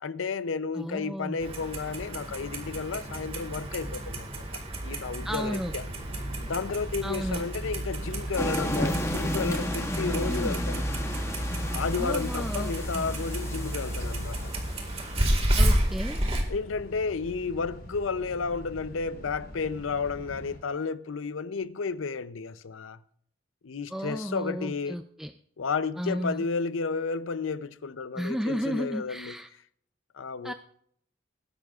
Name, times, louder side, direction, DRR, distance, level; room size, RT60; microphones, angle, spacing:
voice 1, 0.0-4.4 4.8-5.8 6.5-10.8 11.7-14.5 16.5-23.0 23.6-25.0 25.6-29.4 30.1-30.5, left 4 dB, 90° left, 0.6 m, -32 dB
voice 2, 0.7-1.4 5.2-5.7 7.0-7.4 10.3-10.6 12.0-13.1 15.6-16.2 23.9-25.3 26.0-26.4 28.2-29.5 30.4-30.5, equal, ahead, 0.3 m, -33 dB
Clock, 1.4-16.4, right 1 dB, 30° right, 1.9 m, -31 dB
sound 1, 5.2-20.6, equal, 50° left, 5.0 m, -43 dB
sound 2, 8.4-15.0, left 1 dB, 15° left, 0.9 m, -34 dB
20.5 x 10.5 x 2.4 m
head